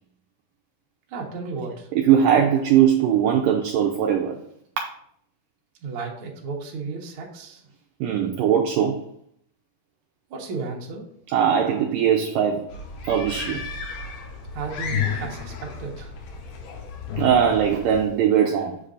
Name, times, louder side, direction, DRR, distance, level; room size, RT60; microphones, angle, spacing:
voice 1, 1.1-1.9 5.8-7.6 10.3-11.1 14.5-16.1, right 4 dB, 65° right, 1.3 m, -33 dB
voice 2, 2.0-4.4 4.8-4.9 8.0-9.0 11.3-12.6 13.1-13.6 17.2-18.8, right 8 dB, 80° right, 1.9 m, -20 dB
sound 1, 12.7-18.0, left 6 dB, 85° left, 3.0 m, -32 dB
7.3 x 6.8 x 2.5 m
omnidirectional pair, 4.4 m